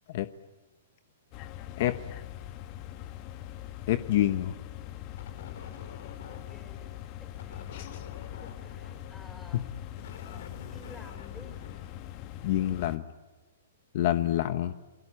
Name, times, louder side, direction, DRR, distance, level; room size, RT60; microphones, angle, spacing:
sound 1, 1.3-13.0, left 12 dB, 30° left, 1.0 m, -42 dB
voice 1, 3.9-4.5 7.7-7.9 9.5-9.6 12.4-13.0 13.9-14.7, left 13 dB, 50° left, 11 dB, 1.0 m, -27 dB
sound 2, 5.1-6.8 7.3-12.5, left 7 dB, 65° left, 3.7 m, -47 dB
voice 2, 6.3-11.6, left 2 dB, 5° left, 4 dB, 5.6 m, -54 dB
28.0 x 21.0 x 9.7 m, 1.2 s
hypercardioid pair, 155°, 0 cm